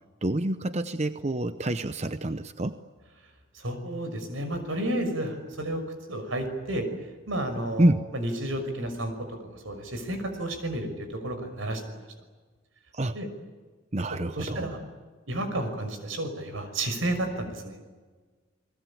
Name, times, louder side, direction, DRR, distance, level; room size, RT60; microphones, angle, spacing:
voice 1, 0.2-2.8 7.8-8.1 12.9-13.2 13.9-14.7, right 1 dB, 35° right, 11 dB, 0.8 m, -27 dB
voice 2, 3.5-5.8 6.1-12.1 13.1-13.3 14.1-14.8 15.3-17.8, right 1 dB, 85° right, 7 dB, 5.9 m, -32 dB
30.0 x 21.0 x 8.7 m, 1.4 s
head